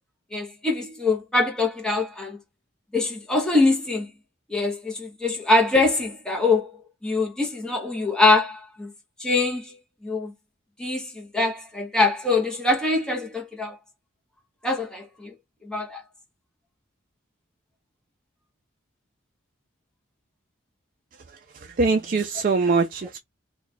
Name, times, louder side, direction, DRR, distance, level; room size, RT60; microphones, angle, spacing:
voice 1, 0.3-2.4 2.9-4.1 4.5-6.7 7.0-8.9 9.2-9.7 10.0-10.3 10.8-13.8 14.6-15.3 15.7-16.0, left 3 dB, 5° left, 0.8 m, -23 dB
voice 2, 21.8-23.2, right 4 dB, 45° right, 0.4 m, -22 dB
3.1 x 2.3 x 4.0 m
head